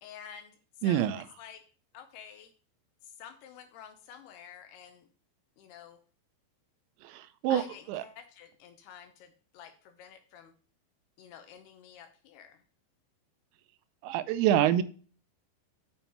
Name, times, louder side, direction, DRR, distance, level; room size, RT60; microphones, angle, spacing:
voice 1, 0.0-1.6 1.9-2.5 3.0-5.1 5.6-6.0 7.5-10.5 11.2-12.6, left 8 dB, 75° left, 8 dB, 2.5 m, -50 dB
voice 2, 0.8-1.2 7.0-7.6 7.9-8.0 14.0-14.8, right 11 dB, 85° right, 13 dB, 3.0 m, -26 dB
7.1 x 6.8 x 4.3 m, 0.40 s
omnidirectional pair, 5.1 m